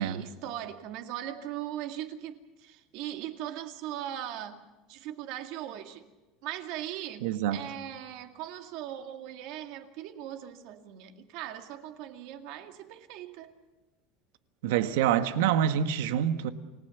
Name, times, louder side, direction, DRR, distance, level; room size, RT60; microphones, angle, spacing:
voice 1, 0.0-4.6 4.9-6.1 6.4-13.5, right 12 dB, 55° right, 2.1 m, -39 dB
voice 2, 7.2-7.6 14.6-16.5, right 10 dB, 85° right, 1.5 m, -26 dB
29.5 x 18.5 x 7.1 m
cardioid pair, 175°, 0 cm